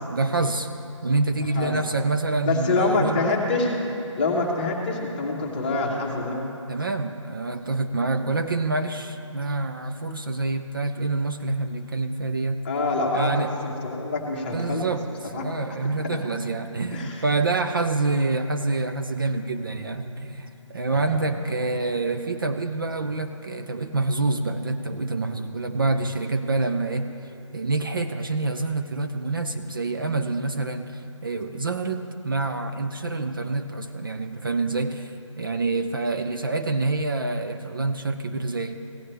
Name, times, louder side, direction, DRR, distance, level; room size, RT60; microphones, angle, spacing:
voice 1, 0.1-0.7 1.0-3.3 6.7-12.6 13.1-13.5 14.5-27.1 27.5-38.7, right 3 dB, 45° right, 7 dB, 0.4 m, -27 dB
voice 2, 2.4-3.8 4.2-6.4 12.6-14.9 15.3-15.5 15.8-15.9 16.9-17.2 20.9-21.2, left 3 dB, 20° left, -3 dB, 1.1 m, -26 dB
16.5 x 10.0 x 3.3 m, 2.8 s
hypercardioid pair, 170°, 17 cm